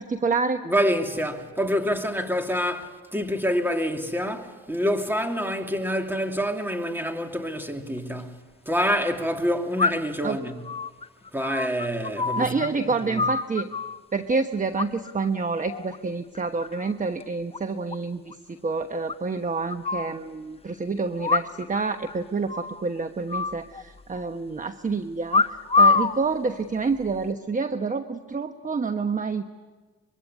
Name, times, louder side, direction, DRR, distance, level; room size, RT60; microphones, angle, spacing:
voice 1, 0.0-0.6 10.2-10.4 12.4-13.7 14.1-29.4, right 4 dB, 25° right, 1.2 m, -28 dB
voice 2, 0.6-8.3 8.7-10.5 11.3-13.2, equal, 5° right, 2.9 m, -27 dB
sound 1, 8.0-8.1 9.8-10.2 10.6-12.7 12.9-14.0 14.8-15.3 15.6-16.0 16.3-16.9 17.2-17.3 17.5-17.6 17.9-18.0 18.3-18.4 19.1-20.1 21.2-21.8 22.1-22.2 22.5-22.8 23.3-24.2 25.3-26.2 26.9-27.3, left 4 dB, 20° left, 0.8 m, -25 dB
24.5 x 23.0 x 9.7 m
cardioid pair, 90°, 30 cm